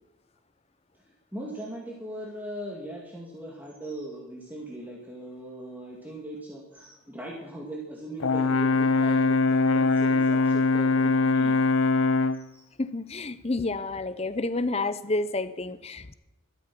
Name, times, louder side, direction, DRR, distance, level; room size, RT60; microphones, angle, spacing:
voice 1, 1.3-11.6 12.3-12.6, right 1 dB, 10° right, 2.2 m, -39 dB
Brass instrument, 8.2-12.5, left 3 dB, 80° left, 0.6 m, -22 dB
voice 2, 12.8-16.1, left 2 dB, 30° left, 0.7 m, -29 dB
13.0 x 13.0 x 6.1 m
head